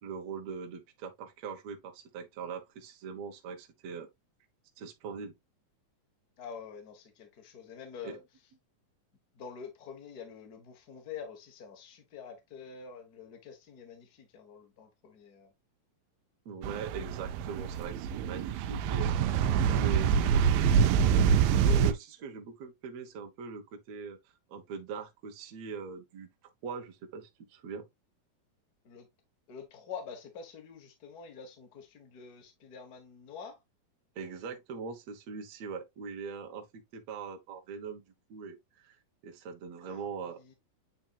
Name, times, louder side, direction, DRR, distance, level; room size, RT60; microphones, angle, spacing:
voice 1, 0.0-4.1 4.8-5.3 8.0-8.2 16.5-19.1 19.6-24.2 24.5-26.3 26.6-27.9 34.2-38.0 38.3-39.0 39.2-40.4, right 5 dB, 60° right, 2.1 m, -41 dB
voice 2, 6.4-8.2 9.3-15.5 28.8-29.1 29.5-33.6 39.8-40.1 40.4-40.5, left 6 dB, 65° left, 0.9 m, -46 dB
sound 1, 16.6-21.9, right 7 dB, 80° right, 2.2 m, -26 dB
8.9 x 4.5 x 2.4 m
omnidirectional pair, 4.2 m